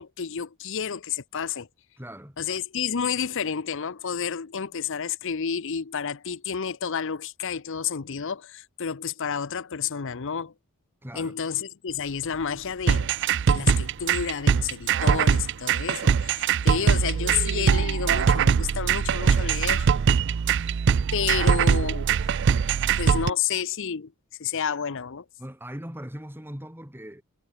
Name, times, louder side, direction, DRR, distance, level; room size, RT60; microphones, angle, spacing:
voice 1, 0.0-1.7 2.4-10.5 11.1-13.1 13.5-19.9 21.1-24.1 24.4-25.2, left 7 dB, 60° left, 0.7 m, -30 dB
voice 2, 2.0-2.4 11.0-11.3 25.4-27.2, equal, 10° right, 3.0 m, -39 dB
sound 1, 11.9-23.0, right 1 dB, 85° right, 4.8 m, -52 dB
sound 2, 12.9-23.3, right 7 dB, 55° right, 0.4 m, -22 dB
head